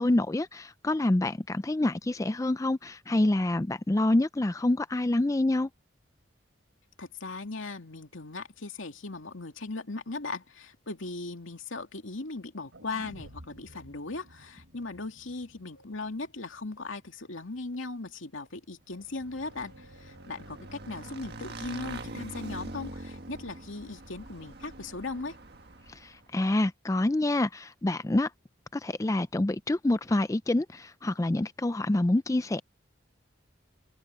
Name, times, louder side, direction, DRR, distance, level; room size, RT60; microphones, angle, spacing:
voice 1, 0.0-5.7 25.9-28.3 28.7-32.6, left 1 dB, 15° left, 0.4 m, -27 dB
voice 2, 7.0-25.4, left 3 dB, 85° left, 2.5 m, -38 dB
sound 1, 12.7-16.8 17.1-17.2, equal, 80° right, 4.3 m, -52 dB
sound 2, 13.7-13.8 14.7-14.8 15.8-15.9 16.8-16.9 17.7-17.8 18.4-18.5 18.9-19.0 19.4-22.6, right 1 dB, 50° left, 2.9 m, -59 dB
Motorcycle / Engine, 19.0-26.3, right 2 dB, 55° right, 1.8 m, -44 dB
open air
head